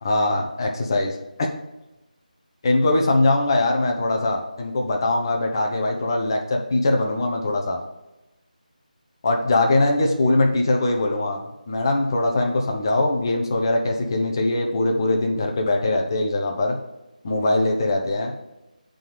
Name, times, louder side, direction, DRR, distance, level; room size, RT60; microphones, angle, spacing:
voice 1, 0.0-1.5 2.6-7.8 9.2-16.8 17.2-18.3, left 2 dB, 30° left, 2 dB, 0.9 m, -22 dB
7.4 x 3.8 x 4.9 m, 1.0 s
figure-of-eight pair, 165°, 5 cm